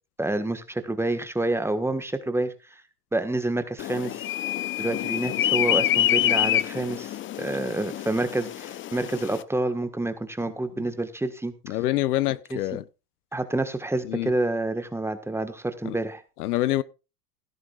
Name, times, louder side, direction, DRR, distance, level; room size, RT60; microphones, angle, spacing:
voice 1, 0.2-2.5 3.1-4.2 4.8-11.8 12.5-12.6 13.3-16.2, right 2 dB, 5° right, 1.5 m, -28 dB
sound 1, 3.8-9.4, left 12 dB, 25° left, 0.6 m, -26 dB
voice 2, 11.7-12.8 14.1-14.3 15.9-16.0 16.4-16.8, left 15 dB, 75° left, 0.8 m, -25 dB
16.5 x 13.0 x 2.4 m
hypercardioid pair, 100°, 46 cm